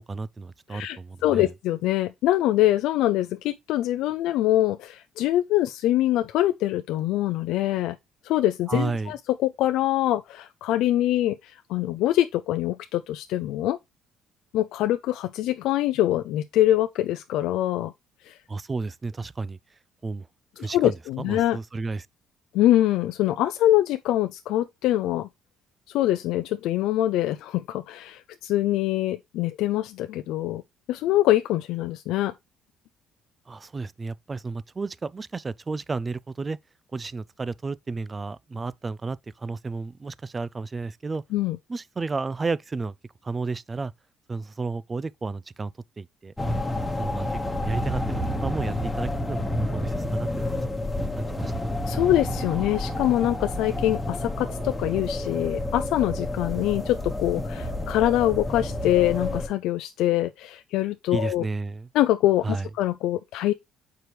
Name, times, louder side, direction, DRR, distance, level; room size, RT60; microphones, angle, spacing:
voice 1, 0.0-1.5 8.7-9.1 18.5-19.6 20.0-20.3 20.6-22.1 33.5-36.6 36.9-41.2 41.7-42.9 43.2-43.9 44.3-45.7 46.0-46.3 47.0-50.5 51.2-51.7 61.1-61.9 62.4-62.7, right 3 dB, 25° right, 0.3 m, -32 dB
voice 2, 0.7-8.0 8.2-13.8 14.5-17.9 18.2-18.4 20.6-21.6 22.5-25.3 25.9-30.6 30.9-32.3 41.3-41.6 51.9-61.5 61.9-63.5, left 14 dB, 80° left, 0.4 m, -24 dB
sound 1, 46.4-59.5, left 1 dB, 10° left, 1.1 m, -29 dB
6.7 x 4.7 x 3.0 m
cardioid pair, 95°, 0 cm